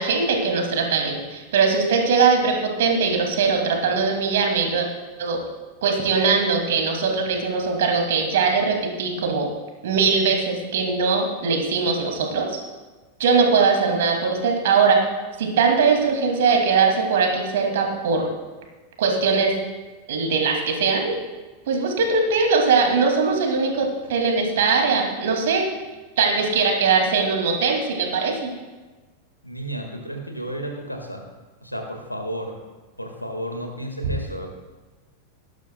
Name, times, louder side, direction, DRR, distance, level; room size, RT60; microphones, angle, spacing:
voice 1, 0.0-4.9 5.2-5.4 5.8-9.5 9.8-12.6 13.2-15.0 15.4-18.3 19.0-19.5 20.1-21.2 21.7-25.7 26.2-28.5, right 5 dB, 55° right, 2 dB, 2.2 m, -21 dB
voice 2, 29.4-31.2 31.6-32.5 33.0-34.5, right 1 dB, 90° left, 3 dB, 1.6 m, -32 dB
18.0 x 11.0 x 2.2 m, 1.3 s
figure-of-eight pair, 90°, 0 cm